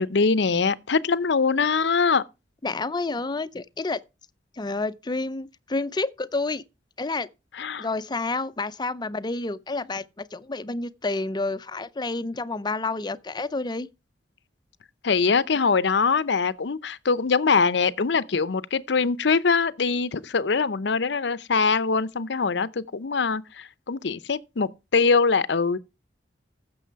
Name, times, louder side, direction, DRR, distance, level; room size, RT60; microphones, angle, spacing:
voice 1, 0.0-2.2 7.6-7.9 15.0-25.8, left 5 dB, 65° left, 0.6 m, -23 dB
voice 2, 2.6-4.0 4.6-6.6 7.0-7.3 7.8-13.9, left 3 dB, 25° left, 0.5 m, -29 dB
15.0 x 6.9 x 4.6 m
head